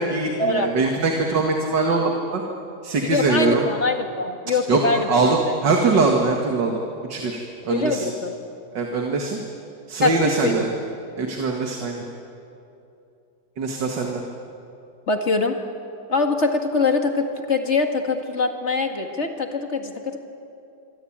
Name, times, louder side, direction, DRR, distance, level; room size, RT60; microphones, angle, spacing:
voice 1, 0.0-2.4 2.8-3.7 4.5-6.8 7.1-8.1 8.7-9.4 9.9-10.7 11.2-12.0 13.6-14.2, right 3 dB, 70° right, 2 dB, 2.6 m, -22 dB
voice 2, 3.1-5.6 7.7-8.3 10.0-10.7 15.1-15.6 16.1-20.2, left 3 dB, 40° left, 5 dB, 2.2 m, -23 dB
27.0 x 24.0 x 8.8 m, 2.7 s
omnidirectional pair, 2.0 m